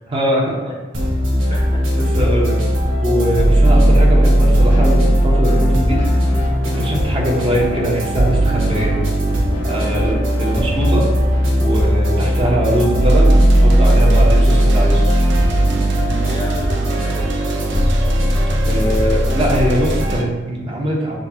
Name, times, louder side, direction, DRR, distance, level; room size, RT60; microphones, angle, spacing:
voice 1, 0.1-0.7 1.5-1.6 2.0-2.6 3.0-6.0 6.6-9.0 9.6-11.1 11.6-15.0 18.6-21.2, right 1 dB, 30° right, -3 dB, 0.9 m, -21 dB
sound 1, 0.9-20.2, equal, 85° right, 0.9 m, -16 dB
voice 2, 1.5-1.9 9.7-10.1 15.9-17.8, left 1 dB, 25° left, -1 dB, 0.4 m, -33 dB
sound 2, 4.7-12.8, left 1 dB, 75° left, 0.6 m, -33 dB
sound 3, 13.0-20.2, right 3 dB, 65° right, 0.4 m, -31 dB
6.3 x 2.3 x 2.8 m, 1.3 s
head